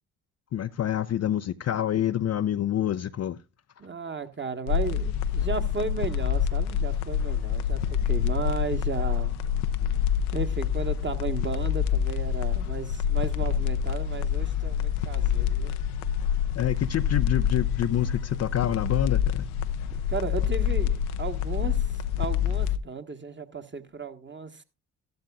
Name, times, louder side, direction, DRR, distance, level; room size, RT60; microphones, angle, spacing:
voice 1, 0.5-3.4 16.5-19.5, left 11 dB, 35° left, 0.5 m, -27 dB
voice 2, 3.8-9.4 10.3-15.7 20.1-21.9 22.2-24.6, right 4 dB, 25° right, 1.3 m, -34 dB
sound 1, 4.7-22.8, left 9 dB, 80° left, 0.7 m, -27 dB
14.0 x 12.0 x 2.4 m
hypercardioid pair, 45°, 44 cm